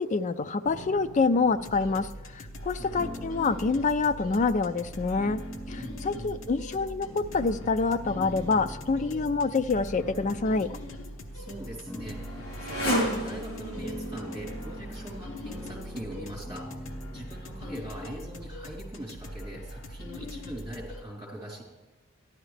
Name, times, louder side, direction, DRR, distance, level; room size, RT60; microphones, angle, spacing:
voice 1, 0.0-2.1 2.3-5.4 5.7-10.8, left 4 dB, 35° left, 11 dB, 0.4 m, -26 dB
sound 1, 0.7-19.6, equal, 10° left, 1.2 m, -44 dB
sound 2, 1.6-21.0, equal, 65° left, 1.0 m, -42 dB
voice 2, 2.8-3.2 5.8-6.4 11.3-21.6, right 1 dB, 20° right, -4 dB, 3.5 m, -41 dB
Motorcycle, 10.8-16.1, equal, 85° left, 4.2 m, -35 dB
14.5 x 11.0 x 3.2 m, 1.2 s
head